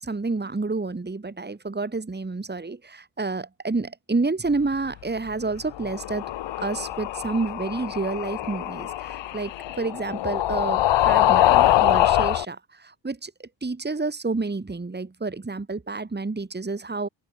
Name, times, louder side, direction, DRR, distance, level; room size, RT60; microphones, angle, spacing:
voice 1, 0.0-6.2 6.6-17.1, right 3 dB, 20° right, 2.9 m, -29 dB
sound 1, 5.7-12.5, left 13 dB, 60° left, 1.7 m, -23 dB
open air
hypercardioid pair, 40°, 49 cm